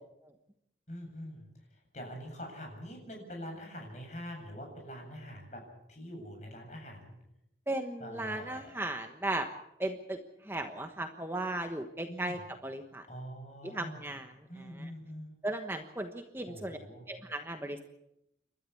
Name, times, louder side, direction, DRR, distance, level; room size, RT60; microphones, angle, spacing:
voice 1, 0.9-5.6 5.9-7.2 8.0-8.7 12.1-12.4 13.1-14.1 14.5-15.4 16.5-17.1, equal, 40° left, 2 dB, 7.9 m, -44 dB
voice 2, 7.7-9.5 9.8-10.2 10.5-13.0 13.7-14.3 15.4-16.8 17.1-17.8, right 1 dB, 10° right, 5 dB, 1.2 m, -36 dB
29.0 x 13.0 x 8.6 m, 0.84 s
head